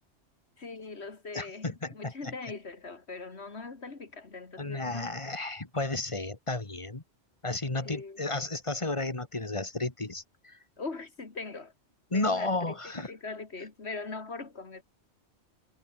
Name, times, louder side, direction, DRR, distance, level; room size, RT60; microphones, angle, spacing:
voice 1, 0.6-5.1 7.8-8.2 10.8-11.7 12.1-14.8, left 4 dB, 70° left, 2.7 m, -41 dB
voice 2, 1.3-2.3 4.6-7.0 7.4-10.6 12.1-13.1, left 2 dB, 25° left, 2.0 m, -33 dB
omnidirectional pair, 1.2 m